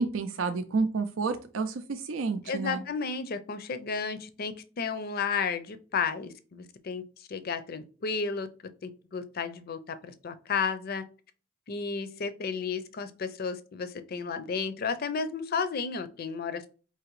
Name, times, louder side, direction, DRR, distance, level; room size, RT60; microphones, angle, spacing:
voice 1, 0.0-2.8, right 4 dB, 80° right, 0.5 m, -30 dB
voice 2, 2.5-8.5 8.8-11.0 11.7-16.7, left 5 dB, 50° left, 0.5 m, -33 dB
4.8 x 2.8 x 3.0 m
head